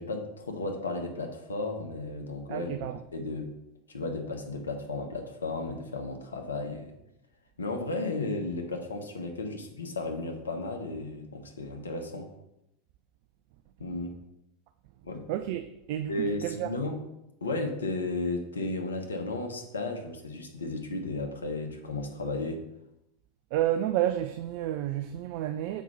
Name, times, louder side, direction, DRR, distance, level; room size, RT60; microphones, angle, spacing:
voice 1, 0.0-3.5 3.9-6.9 7.6-12.3 13.8-14.2 15.0-15.2 16.1-17.0 17.4-22.6, left 2 dB, 75° left, 1.1 m, -34 dB
voice 2, 2.5-3.0 15.3-16.7 23.5-25.8, right 12 dB, 55° right, 0.4 m, -30 dB
7.2 x 4.5 x 5.4 m
figure-of-eight pair, 85°, 0 cm